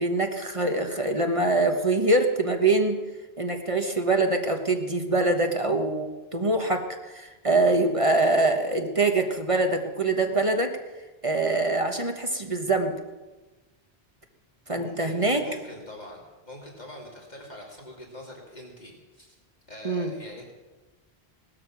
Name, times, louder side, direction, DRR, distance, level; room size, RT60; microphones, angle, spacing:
voice 1, 0.0-3.0 3.4-10.7 11.2-12.9 14.7-15.4 19.8-20.1, right 2 dB, 30° right, 5 dB, 1.3 m, -24 dB
voice 2, 14.7-19.4 19.7-20.5, left 1 dB, 45° left, -1 dB, 2.9 m, -43 dB
18.0 x 13.0 x 6.1 m, 1.2 s
omnidirectional pair, 1.0 m